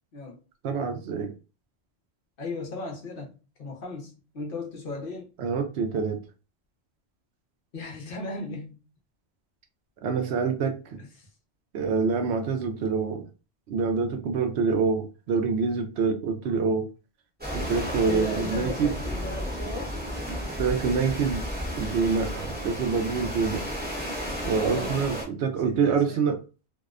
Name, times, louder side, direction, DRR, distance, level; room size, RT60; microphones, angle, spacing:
voice 1, 0.6-1.3 5.4-6.2 10.0-11.0 11.7-13.3 13.7-16.9 17.5-18.9 20.6-23.6 24.5-26.4, right 5 dB, 80° right, 0.9 m, -26 dB
voice 2, 2.4-5.3 7.7-8.8 18.1-20.0 24.6-25.0 25.6-26.2, left 3 dB, 60° left, 0.9 m, -36 dB
sound 1, 17.4-25.3, equal, 10° right, 0.9 m, -33 dB
2.7 x 2.1 x 2.3 m
omnidirectional pair, 1.1 m